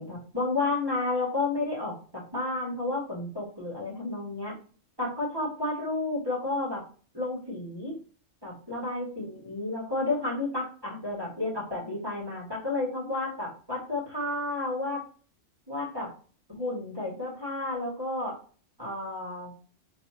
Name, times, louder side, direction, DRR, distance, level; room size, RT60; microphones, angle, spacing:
voice 1, 0.0-4.5 5.0-6.8 7.1-7.9 8.4-15.0 15.7-16.1 16.5-18.4 18.8-19.5, left 2 dB, 20° right, -6 dB, 2.3 m, -31 dB
3.9 x 3.3 x 3.0 m, 0.39 s
omnidirectional pair, 1.3 m